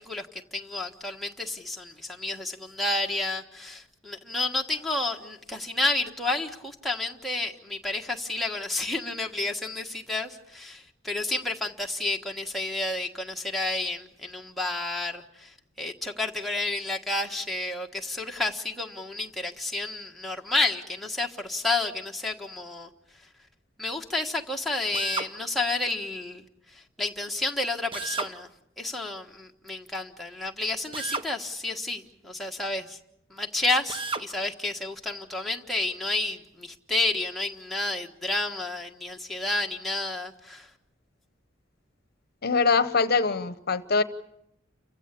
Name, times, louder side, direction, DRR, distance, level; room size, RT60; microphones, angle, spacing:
voice 1, 0.0-22.9 23.8-28.5 28.8-33.0 33.3-40.7, left 2 dB, ahead, 0 dB, 1.4 m, -30 dB
Drill, 24.9-25.3 27.9-28.3 30.9-31.3 33.9-34.3, right 3 dB, 30° right, 1.0 m, -32 dB
voice 2, 42.4-44.0, left 4 dB, 55° left, 13 dB, 0.9 m, -23 dB
29.5 x 15.5 x 8.5 m, 0.80 s
head